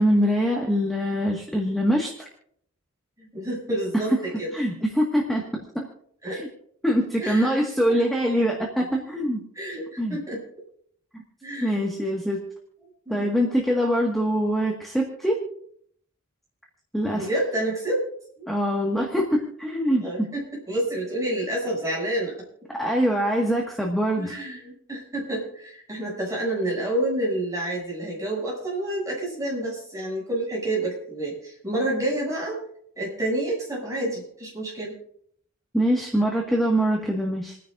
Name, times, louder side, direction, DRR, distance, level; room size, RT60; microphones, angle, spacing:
voice 1, 0.0-2.3 4.5-5.4 5.7-5.9 6.8-9.4 10.0-10.2 11.1-11.2 11.6-12.4 13.1-15.4 16.9-17.3 18.5-20.0 22.8-24.4 35.7-37.6, equal, ahead, -2 dB, 1.6 m, -23 dB
voice 2, 3.2-4.5 6.2-6.4 7.2-8.0 9.6-10.4 11.4-11.8 13.1-13.4 17.1-18.1 18.4-18.5 20.0-22.4 24.2-32.6 33.0-35.0, right 1 dB, 15° right, -4 dB, 7.0 m, -29 dB
29.0 x 10.0 x 2.6 m, 0.65 s
head